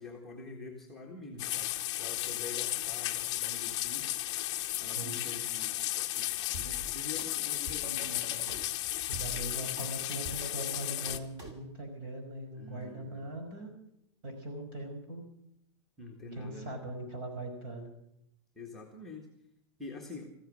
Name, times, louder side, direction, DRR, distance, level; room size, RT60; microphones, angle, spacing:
voice 1, 0.0-4.1 4.8-8.5 12.5-13.3 16.0-16.8 18.5-19.3 19.8-20.3, left 3 dB, ahead, -3 dB, 1.6 m, -46 dB
sound 1, 1.4-11.2, left 15 dB, 25° left, 0.8 m, -34 dB
voice 2, 4.8-5.2 9.1-13.7 14.2-15.2 16.3-17.9, right 1 dB, 45° right, 4 dB, 5.5 m, -41 dB
sound 2, 6.5-8.6 9.1-11.6, left 1 dB, 20° right, 2.3 m, -45 dB
14.5 x 14.5 x 6.3 m, 0.78 s
supercardioid pair, 170°, 16 cm